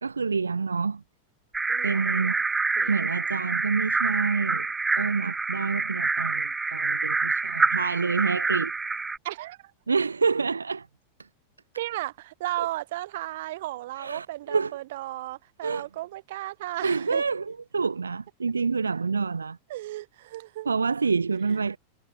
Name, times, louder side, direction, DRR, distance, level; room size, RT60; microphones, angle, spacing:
voice 1, 0.0-1.0 1.8-2.4 2.9-4.7 5.0-8.7 9.9-10.9 12.6-12.7 14.0-14.7 15.6-15.9 16.8-19.6 20.6-21.8, right 5 dB, 75° right, 2.7 m, -27 dB
sound 1, 1.5-9.2, right 4 dB, 10° right, 0.6 m, -27 dB
voice 2, 1.7-2.4 2.8-3.0 9.2-9.7 11.8-17.2 19.7-20.7 21.5-21.7, right 16 dB, 55° right, 6.0 m, -35 dB
figure-of-eight pair, 90°, 0 cm